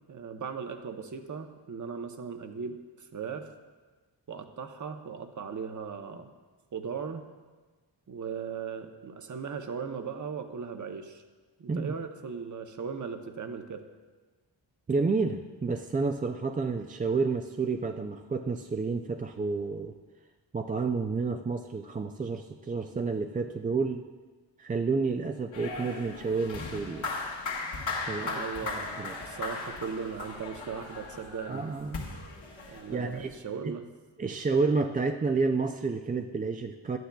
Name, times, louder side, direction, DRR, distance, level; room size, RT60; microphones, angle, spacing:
voice 1, 0.1-3.5 4.3-6.3 6.7-7.2 8.1-11.2 11.6-13.9 28.2-31.7 32.7-33.9, right 6 dB, 40° right, 7 dB, 0.8 m, -38 dB
voice 2, 14.9-19.9 20.5-24.1 24.6-27.1 28.1-28.4 29.0-29.2 31.5-32.0 32.7-33.3 33.6-33.7 34.2-37.0, right 4 dB, 20° right, 5 dB, 0.3 m, -30 dB
sound 1, 25.5-33.3, left 3 dB, 75° left, 1.7 m, -37 dB
11.5 x 9.3 x 2.3 m, 1.3 s
cardioid pair, 65°, 46 cm